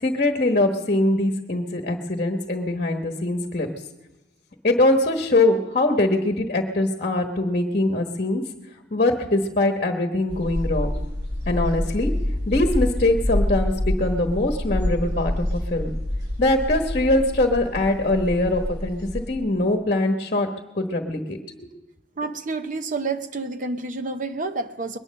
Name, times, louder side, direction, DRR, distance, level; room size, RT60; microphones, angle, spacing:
voice 1, 0.0-3.7 4.6-8.4 8.9-10.9 11.5-12.1 12.5-15.9 16.4-20.5 20.7-21.7, left 2 dB, 45° left, 5 dB, 1.2 m, -22 dB
sound 1, 10.3-19.3, left 1 dB, 75° right, 7.3 m, -27 dB
voice 2, 22.2-25.0, right 3 dB, 45° right, 9 dB, 0.9 m, -29 dB
21.5 x 9.9 x 6.4 m, 1.0 s
head